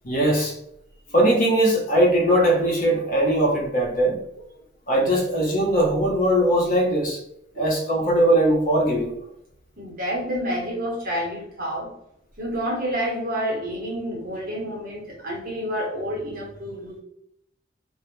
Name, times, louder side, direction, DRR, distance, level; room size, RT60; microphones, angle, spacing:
voice 1, 0.0-0.6 1.1-4.5 4.9-7.2 7.5-9.1, right 1 dB, 45° left, -2 dB, 0.7 m, -20 dB
voice 2, 9.8-11.9 12.4-17.0, equal, 50° right, -2 dB, 0.8 m, -29 dB
2.0 x 2.0 x 3.0 m, 0.77 s
head